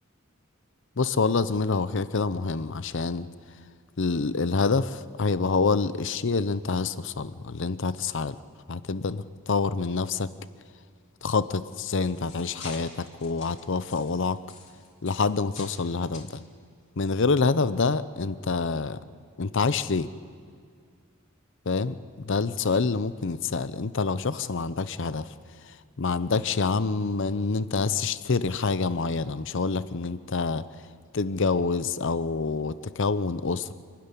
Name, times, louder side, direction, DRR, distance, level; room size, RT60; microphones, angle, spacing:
voice 1, 1.0-3.3 4.0-8.4 8.7-10.3 11.2-14.4 15.0-16.4 17.0-19.0 19.4-20.1 21.7-25.3 25.6-30.7 31.1-33.7, left 4 dB, 60° left, 15 dB, 0.7 m, -27 dB
sound 1, 11.8-15.8 16.1-16.3 17.1-17.2 17.7-17.8, left 4 dB, 35° left, 2.9 m, -46 dB
26.0 x 12.5 x 9.9 m, 2.1 s
head